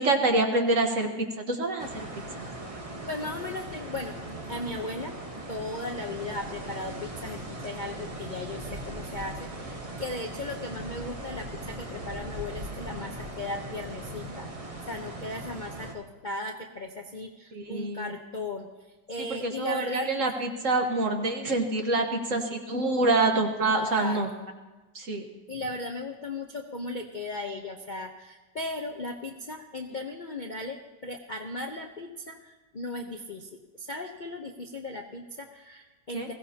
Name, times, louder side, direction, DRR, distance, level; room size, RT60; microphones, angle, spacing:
voice 1, 0.0-2.1 2.4-2.5 17.5-18.2 19.2-24.3 24.9-25.2 36.1-36.3, right 2 dB, 50° right, 4 dB, 1.6 m, -26 dB
sound 1, 1.8-15.9, right 1 dB, 20° right, 1.2 m, -39 dB
voice 2, 3.1-5.2 5.5-18.7 19.1-20.1 23.7-24.3 25.5-36.3, left 2 dB, 40° left, 2 dB, 0.7 m, -37 dB
21.0 x 16.5 x 2.9 m, 1.2 s
omnidirectional pair, 1.8 m